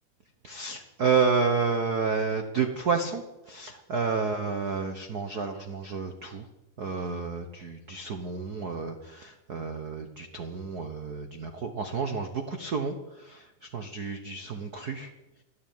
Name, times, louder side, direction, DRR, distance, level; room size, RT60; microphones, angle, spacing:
voice 1, 0.4-6.4 6.8-13.5 13.7-15.1, right 5 dB, 85° right, 6 dB, 0.8 m, -30 dB
12.5 x 11.5 x 9.2 m, 0.98 s
omnidirectional pair, 3.7 m